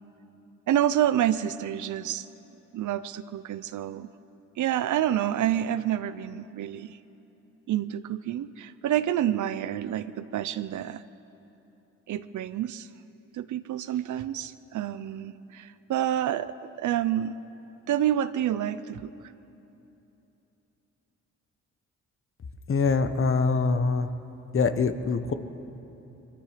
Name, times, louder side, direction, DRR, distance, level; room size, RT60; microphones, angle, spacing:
voice 1, 0.7-2.3 2.7-4.1 4.6-7.0 7.7-11.0 12.1-12.9 13.3-17.4 17.9-19.1, right 11 dB, 80° right, 14 dB, 0.7 m, -28 dB
voice 2, 22.7-24.1 24.5-25.3, left 4 dB, 45° left, 9 dB, 1.2 m, -24 dB
23.5 x 23.0 x 5.1 m, 3.0 s
cardioid pair, 90°, 30 cm